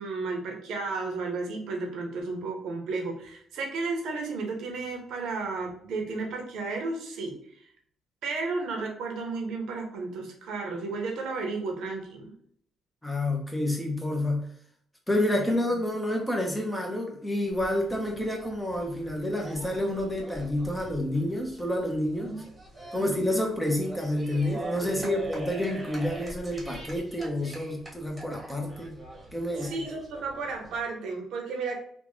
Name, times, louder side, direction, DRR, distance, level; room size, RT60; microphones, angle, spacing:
voice 1, 0.0-7.4 8.2-12.3 15.3-15.5 22.2-22.5 22.9-23.4 24.9-25.2 29.6-31.8, right 3 dB, 80° right, 2 dB, 1.0 m, -33 dB
voice 2, 13.0-14.5 15.1-22.3 22.9-29.0 29.3-29.8, left 1 dB, 5° left, 0 dB, 1.0 m, -29 dB
sound 1, 17.5-30.8, right 1 dB, 20° right, 1.3 m, -43 dB
3.5 x 2.4 x 3.2 m, 0.63 s
cardioid pair, 90°, 0 cm